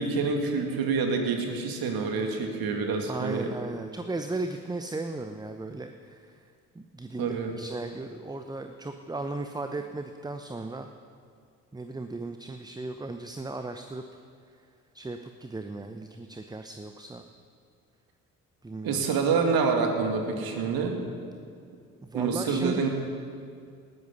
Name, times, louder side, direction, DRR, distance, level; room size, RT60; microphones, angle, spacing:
voice 1, 0.0-3.5 7.2-7.5 18.8-21.0 22.1-22.9, right 4 dB, 55° right, 3 dB, 2.4 m, -27 dB
voice 2, 3.1-10.9 11.7-14.0 14.9-17.3 18.6-19.0 22.0-22.9, right 2 dB, 10° right, 7 dB, 0.8 m, -36 dB
18.5 x 13.5 x 5.4 m, 2.3 s
figure-of-eight pair, 50°, 43 cm